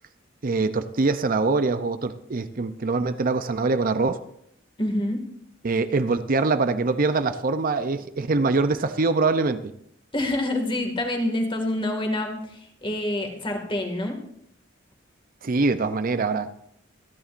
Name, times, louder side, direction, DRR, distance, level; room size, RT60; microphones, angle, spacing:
voice 1, 0.4-4.2 5.6-9.6 15.4-16.5, right 3 dB, 45° right, 0.6 m, -23 dB
voice 2, 4.8-5.3 10.1-14.2, left 1 dB, 25° left, 2.1 m, -27 dB
26.0 x 10.0 x 2.6 m
head